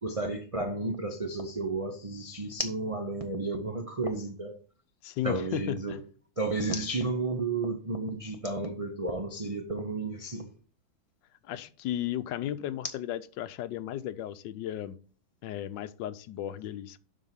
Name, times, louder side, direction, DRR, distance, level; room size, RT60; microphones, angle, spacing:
voice 1, 0.0-4.6 5.2-6.0 6.4-10.5, right 2 dB, 65° right, 0.3 m, -32 dB
voice 2, 5.0-6.0 11.4-14.9 15.4-17.0, left 12 dB, 80° left, 1.3 m, -35 dB
7.6 x 5.5 x 5.6 m
omnidirectional pair, 2.0 m